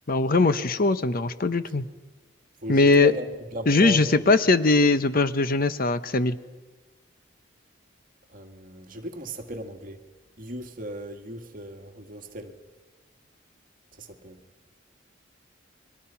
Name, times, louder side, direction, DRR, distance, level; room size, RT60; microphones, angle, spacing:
voice 1, 0.1-1.9 2.7-3.1 3.7-6.4, left 3 dB, 45° left, 12 dB, 0.8 m, -20 dB
voice 2, 2.6-4.2 8.3-10.0 10.4-12.5 14.0-14.4, right 1 dB, 45° right, 3 dB, 2.0 m, -36 dB
30.0 x 22.5 x 5.8 m, 1.3 s
head